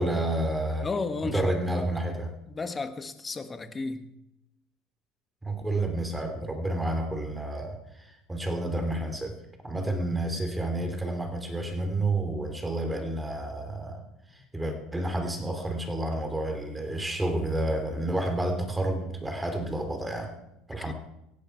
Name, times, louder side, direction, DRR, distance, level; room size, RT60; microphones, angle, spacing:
voice 1, 0.0-0.9 1.2-2.3 5.4-9.4 9.6-14.0 14.3-20.4 20.7-20.9, right 1 dB, 10° right, 2.9 m, -30 dB
voice 2, 0.8-1.9 2.5-4.1 9.9-10.1 20.9-21.0, left 3 dB, 20° left, 1.4 m, -34 dB
17.0 x 15.5 x 4.6 m
supercardioid pair, 115°, 0 cm